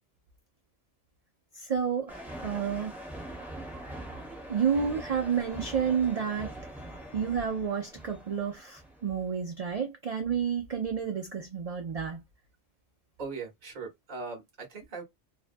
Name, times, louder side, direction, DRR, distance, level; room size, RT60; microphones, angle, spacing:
voice 1, 1.5-2.9 4.5-6.5 7.1-12.2, right 7 dB, 70° right, 0.3 m, -30 dB
sound 1, 2.1-9.2, right 1 dB, ahead, 0.9 m, -43 dB
voice 2, 13.2-15.0, right 4 dB, 40° right, 1.0 m, -39 dB
2.6 x 2.2 x 2.5 m
omnidirectional pair, 1.2 m